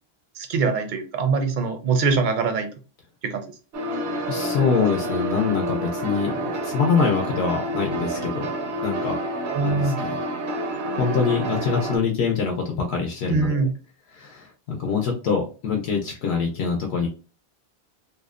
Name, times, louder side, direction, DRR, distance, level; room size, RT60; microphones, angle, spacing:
voice 1, 0.4-2.7 3.2-3.4 9.5-10.0 13.3-13.7, right 4 dB, 55° right, 6 dB, 0.6 m, -23 dB
sound 1, 3.7-12.0, right 1 dB, 80° right, 0.9 m, -28 dB
voice 2, 4.3-8.5 8.8-9.2 9.6-10.2 10.9-13.7 14.1-17.1, left 5 dB, 75° left, 0 dB, 0.8 m, -24 dB
2.7 x 2.0 x 2.3 m, 0.35 s
omnidirectional pair, 1.1 m